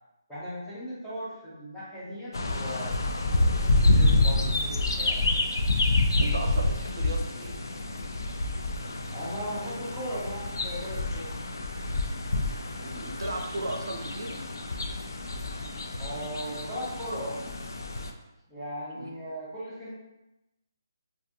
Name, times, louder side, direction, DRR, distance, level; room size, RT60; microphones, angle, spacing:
voice 1, 0.3-2.9 3.2-5.5 9.1-11.4 16.0-17.4 18.5-19.9, equal, ahead, -12 dB, 0.4 m, -37 dB
sound 1, 2.3-18.1, left 2 dB, 75° left, 0.3 m, -28 dB
voice 2, 6.2-7.6 12.8-14.4 18.9-19.1, right 1 dB, 85° right, 2 dB, 0.5 m, -35 dB
2.6 x 2.5 x 2.4 m, 0.93 s
hypercardioid pair, 180°, 2 cm